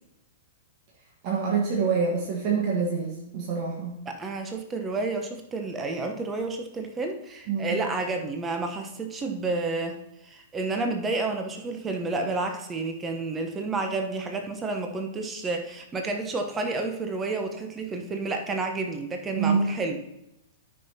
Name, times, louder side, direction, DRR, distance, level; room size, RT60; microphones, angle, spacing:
voice 1, 1.2-4.0 7.5-7.8 19.4-19.7, right 5 dB, 40° right, -2 dB, 1.5 m, -26 dB
voice 2, 4.2-20.0, right 3 dB, 20° right, 4 dB, 1.0 m, -30 dB
13.5 x 5.8 x 2.9 m, 0.86 s
figure-of-eight pair, 105°, 0 cm